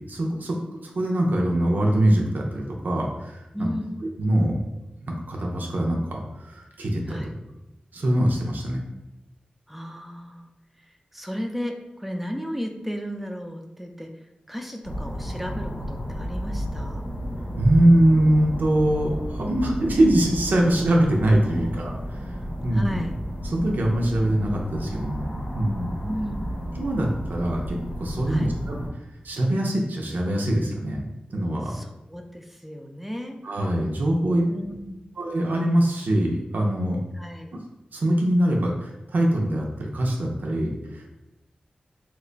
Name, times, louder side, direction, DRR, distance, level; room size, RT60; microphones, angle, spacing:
voice 1, 0.0-3.7 4.2-4.6 5.0-7.2 7.9-8.8 17.5-21.9 22.6-23.0 23.4-25.9 26.8-28.8 29.2-31.8 33.4-34.5 35.2-37.0 37.9-41.1, right 1 dB, 75° right, -1 dB, 0.5 m, -23 dB
voice 2, 3.5-4.0 7.1-7.3 9.7-10.5 11.1-14.1 14.5-17.0 21.5-21.7 22.7-23.2 26.0-26.6 28.3-28.5 31.7-33.4 34.5-35.1 37.2-37.6, equal, 5° right, 4 dB, 0.5 m, -34 dB
sound 1, 14.8-28.9, equal, 75° left, 0.9 m, -32 dB
3.0 x 2.2 x 3.8 m, 0.97 s
wide cardioid pair, 60°, 3 cm